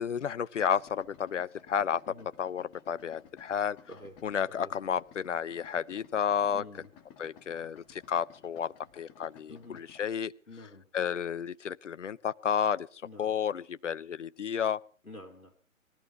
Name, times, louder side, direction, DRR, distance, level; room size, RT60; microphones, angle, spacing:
voice 1, 0.0-2.0 2.4-3.8 4.2-6.6 7.2-10.3 10.9-12.9 13.2-14.8, left 8 dB, 60° left, 19 dB, 0.7 m, -31 dB
Idling, 0.6-10.1, left 8 dB, 10° left, 0.8 m, -57 dB
voice 2, 6.5-6.9 9.5-9.8 10.5-10.9 13.0-13.3 15.0-15.5, left 2 dB, 85° left, 5 dB, 2.4 m, -48 dB
18.5 x 13.0 x 5.8 m, 0.43 s
figure-of-eight pair, 130°, 41 cm